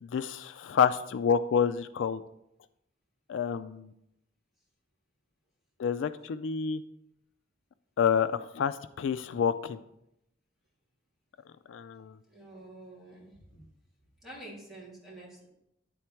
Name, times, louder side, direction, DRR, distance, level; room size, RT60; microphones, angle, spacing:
voice 1, 0.0-2.2 3.3-3.9 5.8-6.8 8.0-9.8 11.7-12.2, left 7 dB, 80° left, 13 dB, 0.3 m, -28 dB
voice 2, 12.3-13.6 14.2-15.5, right 1 dB, ahead, -7 dB, 3.2 m, -48 dB
10.5 x 4.3 x 4.4 m, 0.81 s
head